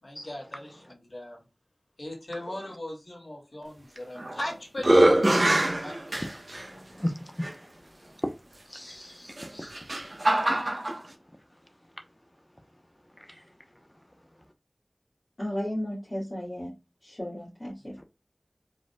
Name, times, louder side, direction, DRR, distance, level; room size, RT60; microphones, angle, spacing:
voice 1, 0.0-1.4 2.0-6.0 6.2-6.4, left 1 dB, 75° left, 2.4 m, -39 dB
sound 1, 4.0-4.4 4.8-6.6 7.4-7.5 9.3-11.0, right 1 dB, 60° right, 1.0 m, -23 dB
voice 2, 6.5-7.5 8.7-9.7 13.2-13.4 18.0-18.1, left 1 dB, 20° left, 0.8 m, -37 dB
voice 3, 15.4-16.7 17.0-18.0, equal, 50° left, 1.9 m, -34 dB
5.0 x 4.0 x 2.2 m
wide cardioid pair, 45°, 0 cm